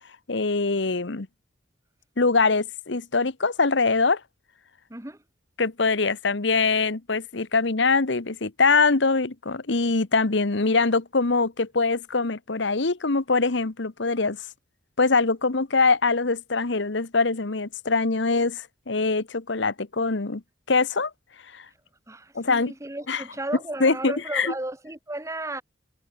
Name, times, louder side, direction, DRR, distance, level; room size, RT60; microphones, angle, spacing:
voice 1, 0.3-1.3 2.2-4.2 5.6-14.4 15.0-20.4 20.7-21.1 21.5-21.7 22.3-22.7 23.1-23.2 23.8-24.5, left 4 dB, 65° left, 1.1 m, -23 dB
voice 2, 4.9-5.2 22.1-25.6, right 1 dB, 15° right, 1.5 m, -34 dB
head